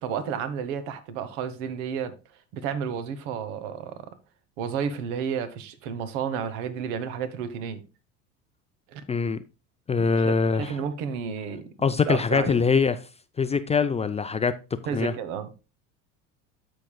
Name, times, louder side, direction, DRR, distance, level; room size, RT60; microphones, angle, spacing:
voice 1, 0.0-2.1 2.5-4.1 4.6-7.8 8.9-9.0 10.1-11.7 12.1-12.6 14.9-15.5, right 7 dB, 70° right, 1.1 m, -31 dB
voice 2, 9.1-9.4 9.9-10.8 11.8-13.0 13.4-14.6 14.9-15.1, left 5 dB, 15° left, 0.4 m, -23 dB
13.0 x 5.2 x 2.2 m
hypercardioid pair, 80°, 38 cm